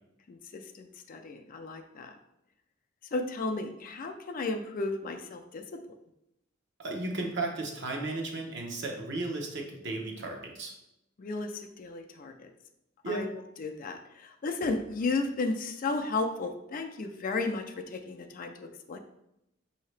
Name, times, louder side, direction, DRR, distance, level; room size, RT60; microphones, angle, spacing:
voice 1, 0.3-2.1 3.1-5.6 11.2-12.5 13.1-13.3 13.6-19.0, left 3 dB, 45° left, 6 dB, 0.4 m, -34 dB
voice 2, 6.8-10.7 13.0-13.3, right 2 dB, 60° right, 1 dB, 0.9 m, -34 dB
5.5 x 2.8 x 3.2 m, 0.84 s
head